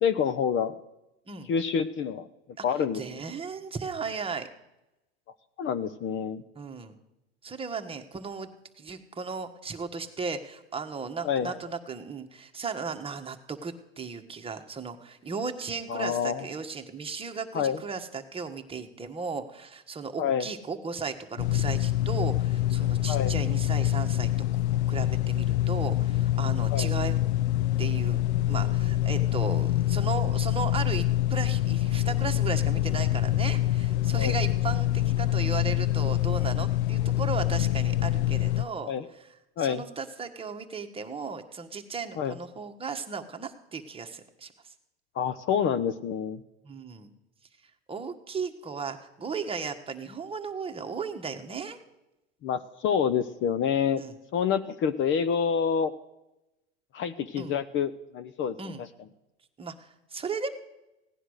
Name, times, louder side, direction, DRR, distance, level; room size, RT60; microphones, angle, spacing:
voice 1, 0.0-0.7 1.5-2.2 2.6-3.2 5.6-6.4 11.2-11.6 15.9-16.5 17.5-17.8 20.2-20.5 23.1-23.3 26.7-26.9 34.2-34.4 38.8-39.1 39.6-39.8 42.2-42.4 45.1-46.4 52.4-54.0 54.3-55.9 56.9-58.9, left 7 dB, 35° left, 12 dB, 0.8 m, -27 dB
voice 2, 2.9-4.5 6.5-6.9 7.4-8.5 8.8-24.3 24.9-27.2 27.8-28.2 28.5-38.9 39.6-44.7 46.6-47.1 47.9-51.8 54.0-54.1 57.4-57.5 58.6-58.8 59.6-60.5, right 5 dB, 15° right, 5 dB, 1.5 m, -36 dB
sound 1, 21.4-38.7, left 14 dB, 80° left, 0.5 m, -26 dB
17.0 x 10.0 x 6.4 m, 0.94 s
hypercardioid pair, 105°, 33 cm